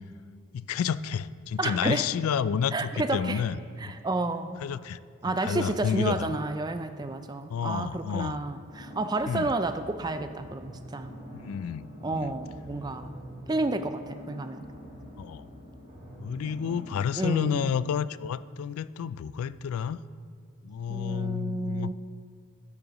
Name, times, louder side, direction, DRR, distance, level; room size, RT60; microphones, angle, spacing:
voice 1, 0.5-3.9 4.6-5.0 5.4-6.4 7.5-8.4 9.3-9.5 11.3-12.3 15.2-15.4 16.2-20.0 20.6-21.9, left 7 dB, 80° left, 17 dB, 0.3 m, -30 dB
voice 2, 1.6-2.1 2.7-3.4 3.8-4.6 5.2-11.1 12.0-13.2 13.5-14.7 17.2-17.6 20.9-21.9, right 2 dB, 20° right, 9 dB, 0.3 m, -31 dB
sound 1, 8.7-17.0, equal, 35° right, 2.6 m, -45 dB
13.0 x 10.5 x 3.0 m, 2.1 s
head